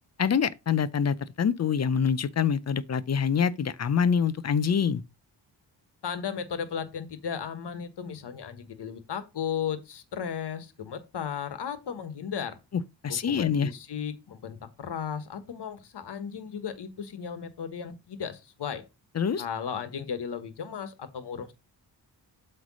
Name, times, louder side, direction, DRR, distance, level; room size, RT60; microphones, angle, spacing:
voice 1, 0.2-5.0 13.0-13.7 19.2-19.4, left 7 dB, 40° left, 0.5 m, -25 dB
voice 2, 6.0-12.6 13.1-18.8 19.4-21.5, left 7 dB, 65° left, 1.4 m, -35 dB
8.0 x 3.3 x 6.1 m
wide cardioid pair, 120°, 44 cm